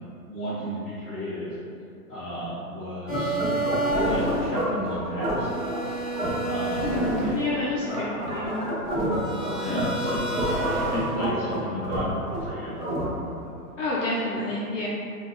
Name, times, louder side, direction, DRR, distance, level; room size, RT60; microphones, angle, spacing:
voice 1, 0.3-1.5 2.1-3.4 3.8-5.5 6.4-6.9 9.6-10.3 10.6-12.8, equal, ahead, -20 dB, 1.1 m, -33 dB
sound 1, 3.1-13.5, right 1 dB, 25° right, 0.6 m, -27 dB
voice 2, 6.8-8.6 13.8-14.9, left 2 dB, 55° left, -6 dB, 0.6 m, -28 dB
4.2 x 2.3 x 2.3 m, 2.5 s
hypercardioid pair, 165°, 45 cm